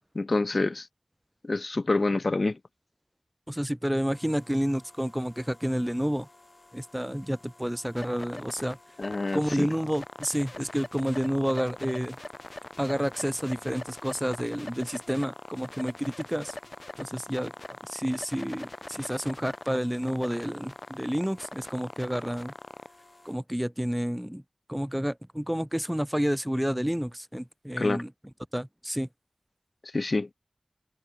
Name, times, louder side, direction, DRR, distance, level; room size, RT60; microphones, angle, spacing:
voice 1, 0.2-0.9 1.4-2.6 9.0-9.7 27.8-28.0 29.9-30.3, left 2 dB, 65° left, 0.3 m, -27 dB
voice 2, 3.5-6.3 6.7-8.8 9.3-12.2 12.8-16.6 17.0-17.5 17.8-22.5 23.3-24.4 24.7-28.1 28.5-29.1, equal, 10° right, 0.4 m, -30 dB
sound 1, 4.1-23.3, left 2 dB, 45° left, 5.2 m, -44 dB
wide cardioid pair, 45°, 0 cm